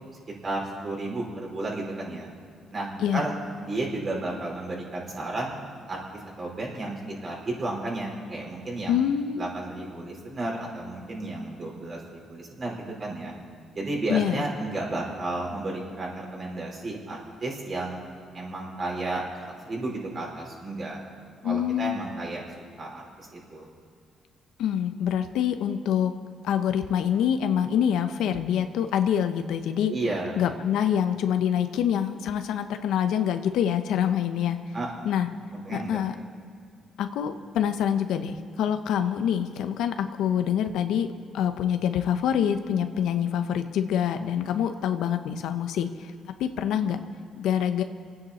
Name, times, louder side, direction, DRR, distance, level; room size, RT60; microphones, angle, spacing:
voice 1, 0.4-2.3 2.7-5.6 5.9-6.0 6.4-9.0 9.4-13.3 13.7-18.0 18.3-19.2 19.6-21.0 21.4-23.7 29.9-30.4 34.7-35.2 35.5-36.0, right 2 dB, 45° right, -2 dB, 4.4 m, -33 dB
voice 2, 8.9-9.5 14.1-14.4 21.4-22.0 24.6-26.1 26.4-29.9 30.4-34.6 35.0-35.3 35.7-36.1 37.0-46.1 46.4-47.0 47.4-47.8, left 9 dB, 85° left, 8 dB, 0.8 m, -26 dB
25.5 x 9.6 x 4.3 m, 2.3 s
cardioid pair, 90°, 0 cm